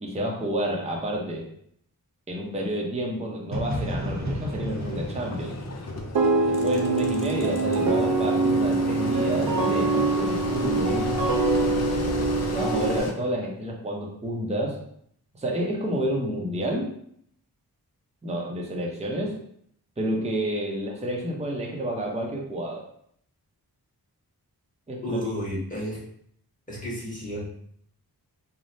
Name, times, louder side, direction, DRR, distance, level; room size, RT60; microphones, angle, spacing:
voice 1, 0.0-1.4 2.3-5.6 6.6-11.1 12.5-14.8 15.4-16.9 18.2-19.3 20.0-22.9 24.9-25.3, right 1 dB, 15° right, -2 dB, 0.6 m, -29 dB
sound 1, 3.5-7.4, equal, 45° right, 0.9 m, -33 dB
Engine, 4.7-13.1, left 2 dB, 45° left, 0.4 m, -33 dB
sound 2, 6.2-13.0, right 3 dB, 65° right, 0.5 m, -24 dB
voice 2, 25.0-26.0 26.7-27.4, equal, 20° left, -8 dB, 1.4 m, -31 dB
3.1 x 2.0 x 2.6 m, 0.66 s
wide cardioid pair, 75°, 38 cm